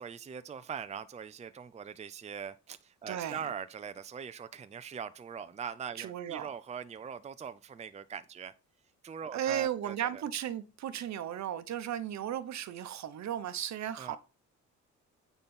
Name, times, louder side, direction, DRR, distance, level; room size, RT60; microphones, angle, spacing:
voice 1, 0.0-8.5 9.0-10.2 14.0-14.2, right 7 dB, 20° right, 0.5 m, -42 dB
voice 2, 3.1-3.5 6.0-6.5 9.3-14.2, right 10 dB, 65° right, 1.0 m, -35 dB
8.9 x 4.1 x 5.5 m
cardioid pair, 90°, 30 cm